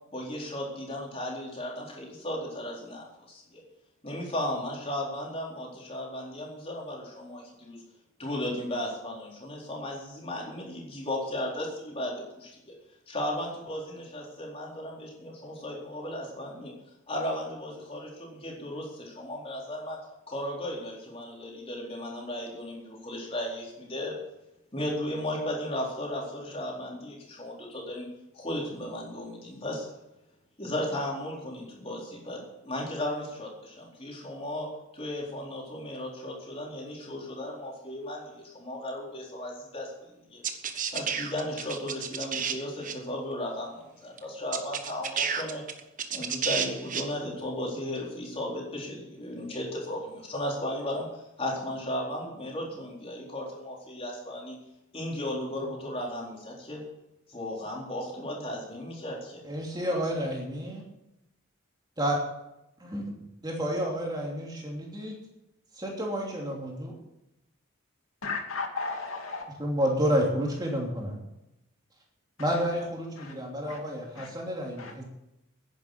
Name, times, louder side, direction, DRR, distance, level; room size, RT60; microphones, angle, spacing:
voice 1, 0.1-3.6 4.0-7.8 8.2-12.7 13.1-16.7 17.1-20.0 20.3-24.2 24.7-28.1 28.3-29.9 30.6-40.4 40.9-45.6 46.1-54.6 54.9-56.8 57.3-59.4, left 1 dB, 25° left, -2 dB, 4.0 m, -35 dB
sound 1, 40.4-42.6 42.8-42.9 44.2-44.3 44.5-47.0, right 7 dB, 40° right, 1.2 m, -31 dB
voice 2, 59.4-60.8 62.0-62.2 62.8-63.1 63.4-65.2 65.8-67.0 69.6-71.2 72.4-75.0, equal, 20° right, -1 dB, 2.9 m, -30 dB
voice 3, 68.2-69.5 72.4-72.6 73.2-73.4 73.7-73.8 74.2-74.3 74.8-74.9, left 4 dB, 75° left, 2 dB, 2.4 m, -35 dB
10.5 x 10.5 x 8.0 m, 0.89 s
head